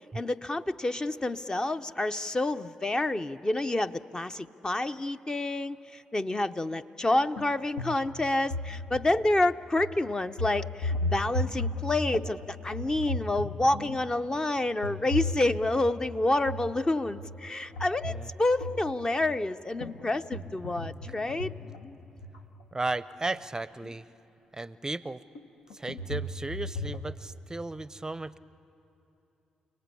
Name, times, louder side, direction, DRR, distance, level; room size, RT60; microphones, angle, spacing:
voice 1, 0.1-21.5, left 2 dB, 25° left, 10 dB, 0.7 m, -28 dB
sound 1, 7.4-7.5 7.8-9.3 9.8-10.0 10.3-12.4 12.7-14.2 14.8-16.0 16.4-16.8 17.1-19.2 19.8-22.4 23.3-23.4 23.9-24.0 25.4-27.0, left 2 dB, 80° left, 1.1 m, -35 dB
voice 2, 22.7-24.1 24.5-25.2 25.7-28.4, right 2 dB, 20° right, 17 dB, 0.6 m, -35 dB
30.0 x 18.5 x 8.5 m, 2.9 s
hypercardioid pair, 45°, 3 cm